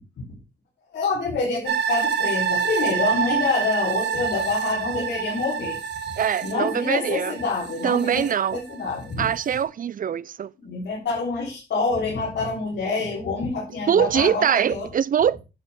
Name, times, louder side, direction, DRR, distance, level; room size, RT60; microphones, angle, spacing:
voice 1, 0.9-5.8 6.4-8.3 8.5-9.3 10.6-14.9, left 4 dB, 80° left, 3.8 m, -27 dB
sound 1, 1.7-8.9 9.3-9.4, right 7 dB, 75° right, 1.6 m, -27 dB
voice 2, 6.2-7.3 7.8-8.6 9.2-10.5 13.9-15.4, right 8 dB, 50° right, 0.5 m, -23 dB
10.0 x 7.6 x 3.6 m
cardioid pair, 100°, 18 cm